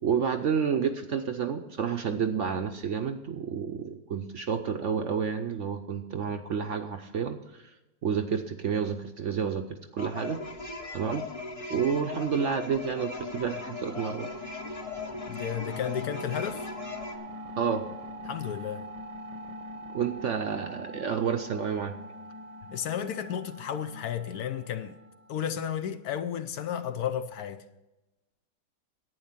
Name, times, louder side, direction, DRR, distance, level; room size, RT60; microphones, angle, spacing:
voice 1, 0.0-7.6 8.0-9.6 9.9-10.4 10.9-11.2 11.7-14.3 17.6-17.9 19.9-22.0, right 7 dB, 60° right, 0.8 m, -30 dB
sound 1, 10.0-17.2, left 3 dB, 30° left, 0.7 m, -39 dB
sound 2, 12.2-25.7, equal, 90° right, 1.7 m, -44 dB
voice 2, 15.3-16.7 18.3-18.9 22.7-25.0 25.3-27.6, left 9 dB, 70° left, 1.1 m, -33 dB
11.0 x 8.8 x 5.7 m
omnidirectional pair, 1.8 m